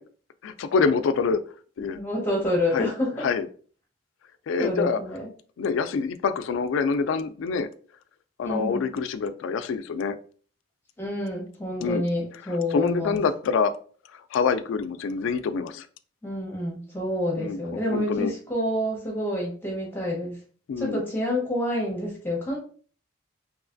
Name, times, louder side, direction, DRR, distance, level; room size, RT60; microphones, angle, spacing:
voice 1, 0.4-1.4 1.8-2.0 2.7-2.9 3.2-3.5 4.5-5.0 5.6-7.7 8.4-10.2 11.8-12.0 12.5-13.7 14.3-15.9 17.4-17.6 17.9-18.3 20.7-21.0, left 5 dB, 75° left, 11 dB, 0.3 m, -26 dB
voice 2, 1.8-3.3 4.6-5.3 8.4-8.9 11.0-13.2 16.2-20.4 20.8-22.6, left 1 dB, 10° left, -3 dB, 0.8 m, -28 dB
3.1 x 2.9 x 2.5 m, 0.43 s
head